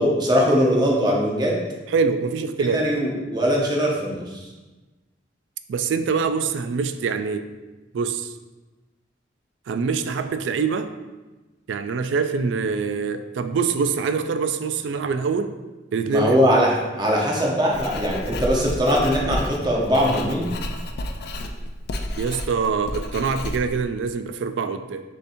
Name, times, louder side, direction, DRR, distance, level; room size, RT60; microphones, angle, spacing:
voice 1, 0.0-1.6 2.6-4.4 16.1-20.5, equal, 25° right, -3 dB, 0.8 m, -21 dB
voice 2, 1.9-2.8 5.7-7.5 7.9-8.3 9.7-10.9 11.7-15.5 15.9-16.4 22.2-25.0, right 5 dB, 70° right, 9 dB, 0.3 m, -24 dB
Writing, 17.7-23.8, left 1 dB, 60° left, 0.4 m, -31 dB
6.7 x 2.8 x 2.6 m, 1.2 s
head